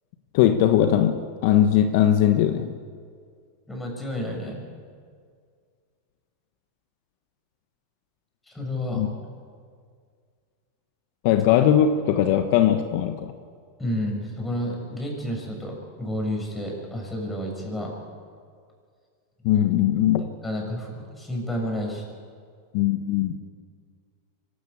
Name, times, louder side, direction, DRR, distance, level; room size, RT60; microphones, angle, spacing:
voice 1, 0.3-2.7 9.0-9.1 11.2-13.3 19.4-20.2 22.7-23.3, left 10 dB, 60° left, 7 dB, 1.2 m, -20 dB
voice 2, 3.7-4.6 8.5-9.1 13.8-17.9 20.4-22.0, equal, 10° left, 0 dB, 6.5 m, -30 dB
24.0 x 13.0 x 8.6 m, 2.1 s
hypercardioid pair, 120°, 0 cm